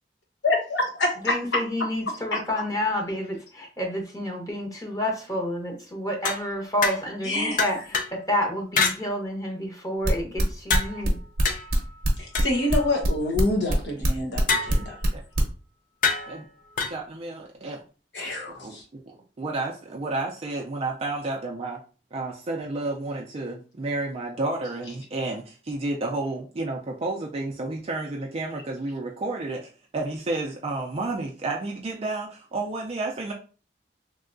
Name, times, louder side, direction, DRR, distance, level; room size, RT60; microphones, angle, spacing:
voice 1, 0.4-1.1 2.3-2.4 7.2-7.6 12.2-15.0 18.1-18.8, left 2 dB, 90° left, 1 dB, 1.0 m, -26 dB
voice 2, 1.2-11.2, left 1 dB, 20° left, 0 dB, 0.8 m, -29 dB
sound 1, 6.2-7.2 7.6-8.2 8.8-9.0 10.7-13.1 14.5-15.1 16.0-17.0, left 4 dB, 50° left, 0.5 m, -28 dB
sound 2, 10.0-15.5, right 2 dB, 55° right, 0.8 m, -25 dB
voice 3, 16.8-17.8 18.6-19.0 19.4-21.8 22.1-33.3, right 2 dB, 35° right, 0 dB, 0.4 m, -31 dB
3.2 x 2.7 x 2.5 m, 0.36 s
head